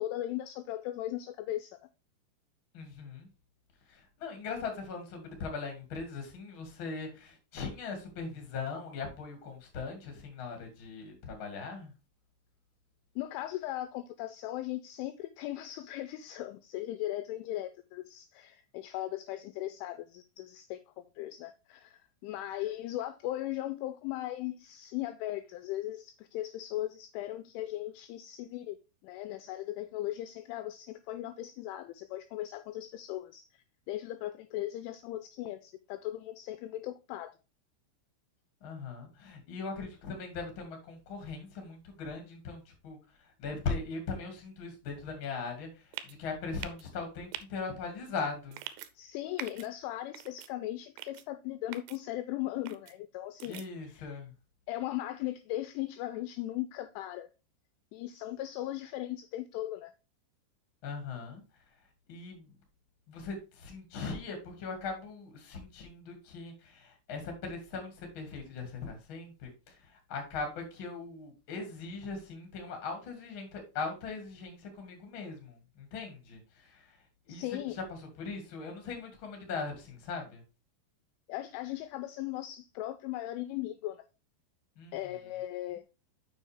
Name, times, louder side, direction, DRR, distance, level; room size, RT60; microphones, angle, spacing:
voice 1, 0.0-1.8 13.2-28.8 29.0-33.5 33.9-37.3 49.0-54.1 54.7-57.3 57.9-59.9 77.3-77.8 81.3-84.0 84.9-85.8, left 14 dB, 85° left, 2.8 m, -38 dB
voice 2, 2.7-3.3 3.9-11.9 38.6-48.6 53.4-54.3 60.8-61.4 62.1-62.5 63.1-77.0 77.3-77.4 77.7-80.4 84.8-84.9, left 4 dB, 40° left, 1.9 m, -40 dB
sound 1, 45.9-46.2 46.6-46.8 47.3-47.4 48.5-48.9 49.4-49.7 50.1-50.5 51.0-51.2 51.7-52.0 52.7-52.9 53.4-53.7, right 13 dB, 85° right, 2.8 m, -42 dB
7.3 x 6.4 x 3.3 m
omnidirectional pair, 5.9 m